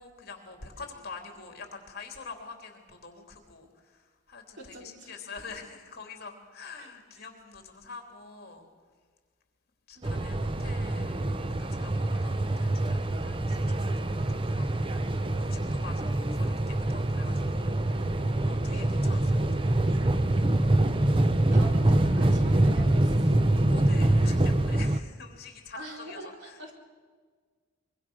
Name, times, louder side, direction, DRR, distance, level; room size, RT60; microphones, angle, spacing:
voice 1, 0.0-8.7 9.9-11.2 11.6-13.9 14.3-15.0 15.4-18.1 18.4-20.0 23.7-26.7, left 4 dB, 50° left, 4 dB, 3.4 m, -46 dB
voice 2, 4.5-5.3 6.8-7.2 9.9-10.5 18.7-19.0 21.5-23.4 25.7-26.7, right 2 dB, 60° right, 1 dB, 4.2 m, -46 dB
sound 1, 10.0-25.0, right 1 dB, 25° right, 0.7 m, -25 dB
24.5 x 23.0 x 6.3 m, 1.5 s
head